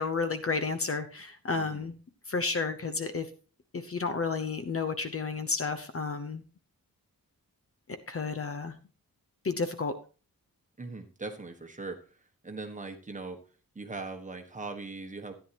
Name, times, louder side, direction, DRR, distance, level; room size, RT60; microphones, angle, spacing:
voice 1, 0.0-1.9 2.3-3.3 3.7-6.4 8.1-8.7 9.4-9.9, left 4 dB, 40° left, 9 dB, 0.8 m, -31 dB
voice 2, 1.5-1.9 10.8-12.0 12.4-13.4 13.7-15.3, right 3 dB, 20° right, 4 dB, 1.5 m, -40 dB
13.0 x 10.0 x 3.0 m, 0.36 s
wide cardioid pair, 175°, 35 cm